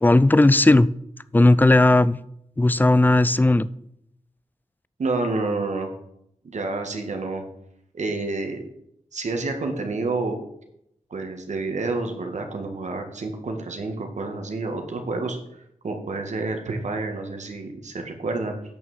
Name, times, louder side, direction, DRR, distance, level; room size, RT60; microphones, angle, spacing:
voice 1, 0.0-0.9 1.3-2.2 2.6-3.7, left 2 dB, 15° left, 18 dB, 0.4 m, -16 dB
voice 2, 5.0-5.9 6.4-7.4 7.9-8.6 9.1-10.4 11.1-15.4 15.8-18.5, right 3 dB, 75° right, 4 dB, 1.8 m, -29 dB
9.0 x 6.4 x 7.1 m, 0.77 s
wide cardioid pair, 85°, 12 cm